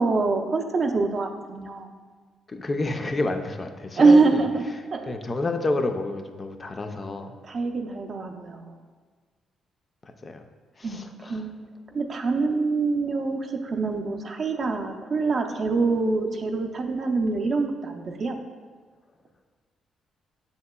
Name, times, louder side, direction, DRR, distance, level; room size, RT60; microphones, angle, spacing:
voice 1, 0.0-1.9 4.0-4.5 4.9-5.1 7.5-8.7 10.8-11.0 11.3-11.5 11.9-18.4, right 3 dB, 45° right, 3 dB, 0.4 m, -24 dB
voice 2, 2.5-4.4 4.7-7.4 10.0-10.5 10.8-11.5, left 2 dB, 30° left, 6 dB, 0.3 m, -30 dB
7.1 x 2.8 x 2.2 m, 1.5 s
cardioid pair, 90°, 0 cm